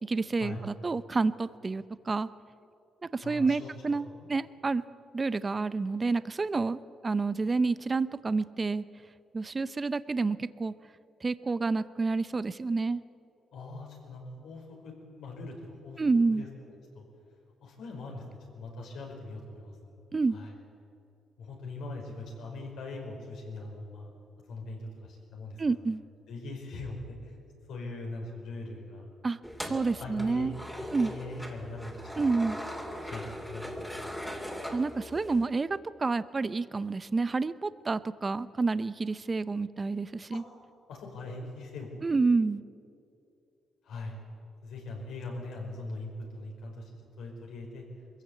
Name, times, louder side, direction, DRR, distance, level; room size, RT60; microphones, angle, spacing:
voice 1, 0.0-2.3 3.0-4.8 5.1-8.8 9.3-10.7 11.2-13.0 16.0-16.4 20.1-20.4 25.6-26.0 29.2-30.5 30.9-31.1 32.2-32.6 34.7-40.4 42.0-42.6, right 3 dB, 30° right, 15 dB, 0.6 m, -29 dB
voice 2, 3.2-3.7 4.1-4.3 13.5-16.0 16.3-17.0 17.6-18.2 18.5-19.9 20.3-20.5 21.4-24.1 24.5-25.6 26.3-27.4 27.7-29.1 29.6-32.3 33.0-34.4 40.3-40.4 40.9-41.9 43.8-44.2 44.6-46.9 47.2-47.8, left 2 dB, 80° left, 0 dB, 5.3 m, -41 dB
sound 1, 29.4-35.4, equal, ahead, 2.7 m, -40 dB
22.0 x 15.0 x 8.4 m, 2.6 s
cardioid pair, 90°, 0 cm